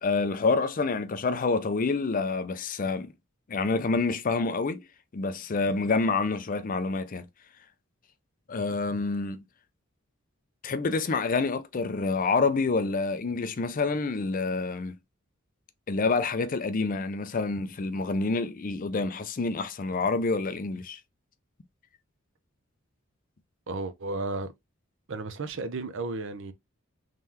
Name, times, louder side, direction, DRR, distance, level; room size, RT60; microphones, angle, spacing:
voice 1, 0.0-3.1 3.5-4.8 5.1-7.3 8.5-9.4 10.6-15.0 15.9-21.0, left 4 dB, 40° left, 0.5 m, -27 dB
voice 2, 23.7-24.5 25.1-26.5, right 3 dB, 65° right, 0.6 m, -33 dB
3.7 x 3.2 x 2.8 m
head